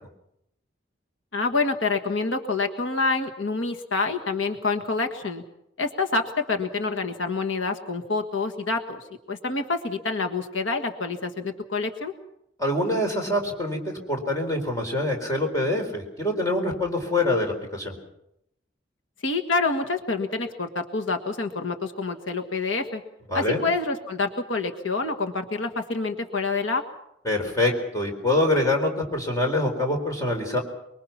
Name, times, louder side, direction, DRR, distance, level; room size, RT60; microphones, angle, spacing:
voice 1, 1.3-5.4 5.8-12.1 19.2-23.0 23.3-26.8, left 3 dB, 80° left, 5 dB, 1.6 m, -27 dB
voice 2, 12.6-18.0 23.3-23.6 27.2-30.6, left 1 dB, 15° left, 2 dB, 4.2 m, -25 dB
24.0 x 23.0 x 5.9 m, 0.79 s
head